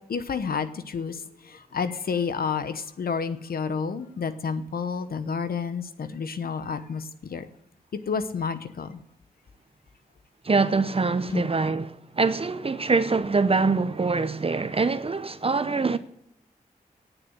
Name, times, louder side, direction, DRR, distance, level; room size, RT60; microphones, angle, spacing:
voice 1, 0.1-7.5 8.1-9.0 11.3-11.4, left 6 dB, 70° left, 1.0 m, -30 dB
voice 2, 10.4-16.0, right 4 dB, 35° right, 0.7 m, -24 dB
8.8 x 7.9 x 8.0 m
cardioid pair, 45°, 16 cm